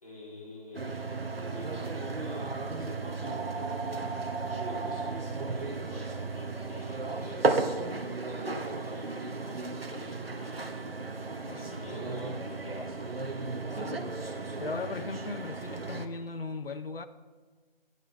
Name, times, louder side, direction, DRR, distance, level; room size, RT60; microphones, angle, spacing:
voice 1, 0.0-7.5 8.3-11.1 11.6-13.2 13.8-14.2, left 1 dB, 40° left, 2.7 m, -47 dB
sound 1, 0.7-16.1, right 3 dB, 80° right, 1.2 m, -34 dB
voice 2, 13.7-14.1 14.6-17.1, left 4 dB, 75° left, 0.8 m, -38 dB
10.5 x 9.8 x 4.5 m
figure-of-eight pair, 170°, 29 cm